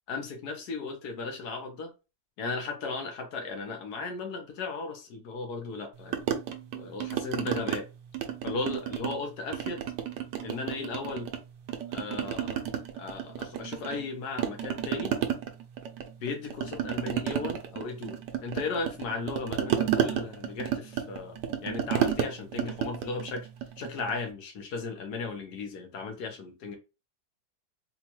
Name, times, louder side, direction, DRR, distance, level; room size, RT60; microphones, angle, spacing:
voice 1, 0.1-1.9 2.4-6.2 6.7-7.9 8.4-9.8 10.4-11.3 11.9-12.6 13.0-15.2 16.2-23.5 23.8-26.8, left 4 dB, 75° left, 1.3 m, -36 dB
sound 1, 6.1-7.8 8.1-9.2 9.5-11.4 11.7-14.1 14.4-24.2, right 10 dB, 90° right, 1.2 m, -31 dB
4.3 x 2.3 x 2.9 m
omnidirectional pair, 1.8 m